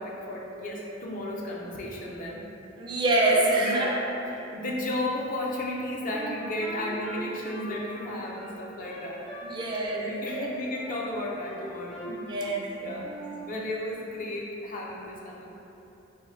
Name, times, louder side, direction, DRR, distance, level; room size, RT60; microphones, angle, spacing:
voice 1, 0.0-2.5 3.5-4.0 4.3-9.3 9.9-12.1 12.8-13.1 13.5-15.5, left 1 dB, 45° left, -2 dB, 0.5 m, -34 dB
voice 2, 2.8-4.0 9.4-10.5 12.1-13.1, right 2 dB, 25° right, -3 dB, 0.4 m, -26 dB
Wind instrument woodwind instrument, 6.1-9.6 9.8-11.0 11.4-12.7 13.0-13.5, equal, 85° left, 1.4 m, -42 dB
3.6 x 2.6 x 4.3 m, 2.9 s
head